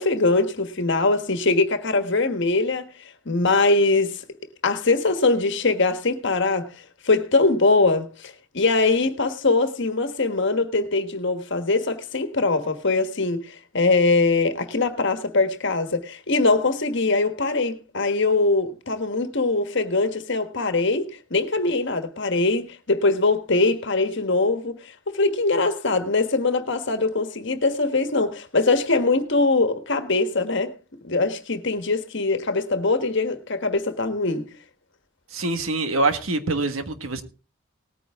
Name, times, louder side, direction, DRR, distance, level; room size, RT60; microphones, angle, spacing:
voice 1, 0.0-2.9 3.2-4.2 4.6-6.7 7.0-30.7 31.0-34.5, left 3 dB, 60° left, 1.4 m, -22 dB
voice 2, 35.3-37.2, right 2 dB, 85° right, 1.6 m, -24 dB
18.5 x 9.4 x 3.6 m
head